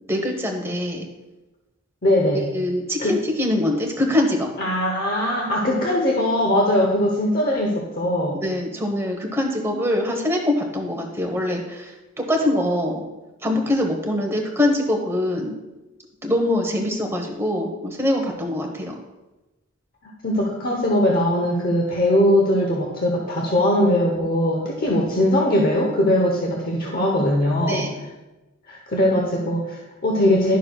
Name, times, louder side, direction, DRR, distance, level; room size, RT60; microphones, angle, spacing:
voice 1, 0.1-1.1 2.5-4.5 8.4-13.0 13.4-15.5 16.2-18.9 27.7-27.9, left 1 dB, 10° right, 2 dB, 1.0 m, -23 dB
voice 2, 2.0-2.4 3.0-3.1 4.6-8.4 20.2-27.9 28.7-30.6, left 1 dB, 45° left, -1 dB, 0.9 m, -20 dB
11.5 x 6.4 x 2.3 m, 1.1 s
head